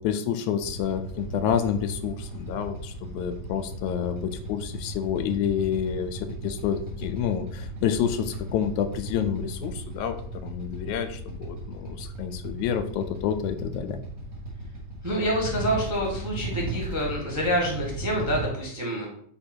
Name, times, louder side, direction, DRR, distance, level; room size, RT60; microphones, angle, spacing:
voice 1, 0.0-14.0, left 8 dB, 90° left, 9 dB, 2.0 m, -29 dB
Motorcycle / Idling, 0.6-18.5, right 2 dB, 35° right, 1.3 m, -36 dB
voice 2, 15.0-19.1, equal, 10° right, -2 dB, 1.0 m, -27 dB
7.9 x 3.2 x 4.4 m, 0.62 s
omnidirectional pair, 3.3 m